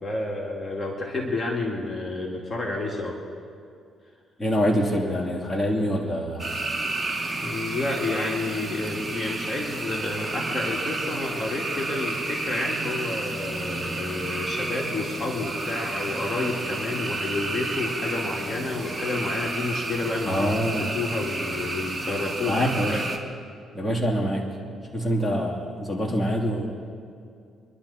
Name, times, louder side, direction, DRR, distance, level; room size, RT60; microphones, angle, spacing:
voice 1, 0.0-3.2 7.4-23.0, left 2 dB, 30° left, -2 dB, 2.5 m, -30 dB
voice 2, 4.4-6.4 20.3-20.9 22.5-23.0 23.7-24.4 24.9-26.7, equal, 10° left, -2 dB, 2.9 m, -25 dB
sound 1, 6.4-23.2, right 2 dB, 20° right, 2.1 m, -31 dB
26.0 x 12.0 x 4.3 m, 2.4 s
cardioid pair, 90°, 0 cm